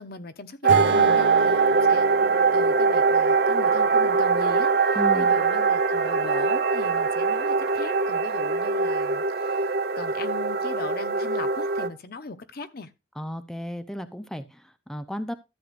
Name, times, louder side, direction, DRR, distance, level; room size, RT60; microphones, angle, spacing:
voice 1, 0.0-12.9, left 3 dB, 55° left, 0.9 m, -39 dB
sound 1, 0.6-11.9, right 4 dB, 55° right, 0.8 m, -22 dB
Acoustic guitar / Strum, 0.7-4.9, right 4 dB, 85° right, 1.5 m, -34 dB
voice 2, 5.0-5.4 13.2-15.3, equal, 5° left, 0.6 m, -34 dB
13.0 x 7.9 x 2.6 m
head